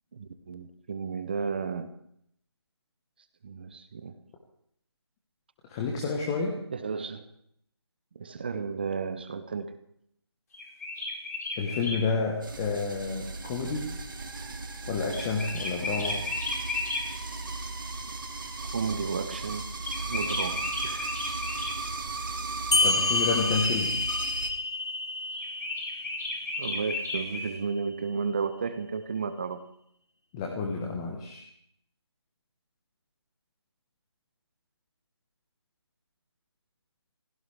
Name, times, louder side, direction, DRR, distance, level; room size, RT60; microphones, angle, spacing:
voice 1, 0.1-1.9 3.4-4.1 6.7-7.3 8.1-9.8 18.0-18.1 18.7-19.7 20.1-21.1 26.6-29.6, right 5 dB, 20° right, 11 dB, 0.7 m, -33 dB
voice 2, 5.6-6.6 11.6-13.9 14.9-16.2 22.8-24.0 30.3-31.4, left 4 dB, 10° left, 1 dB, 1.2 m, -30 dB
sound 1, 10.5-12.0 15.1-17.0 19.8-21.8 25.3-27.5, left 2 dB, 35° left, 4.9 m, -33 dB
sound 2, 12.4-24.5, right 3 dB, 50° right, 1.8 m, -36 dB
sound 3, 22.7-27.7, left 3 dB, 70° left, 0.7 m, -29 dB
24.0 x 16.0 x 3.4 m, 0.71 s
figure-of-eight pair, 160°, 14 cm